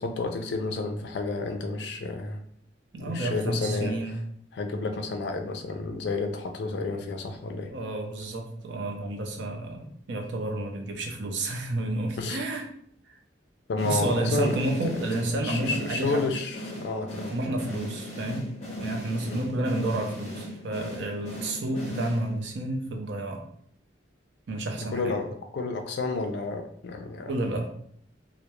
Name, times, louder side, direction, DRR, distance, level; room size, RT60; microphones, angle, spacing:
voice 1, 0.0-2.4 3.0-3.9 4.5-7.7 12.2-12.4 13.7-14.7 15.4-17.3 19.3-19.4 24.8-27.3, left 3 dB, 65° left, 6 dB, 0.3 m, -31 dB
voice 2, 2.9-4.1 7.7-12.7 13.1-13.2 13.8-16.3 17.3-18.5 18.8-23.5 24.5-25.2 27.3-27.7, right 2 dB, 70° right, 3 dB, 0.4 m, -30 dB
sound 1, 13.8-22.6, left 1 dB, 35° left, 0.7 m, -38 dB
2.2 x 2.0 x 2.9 m, 0.66 s
head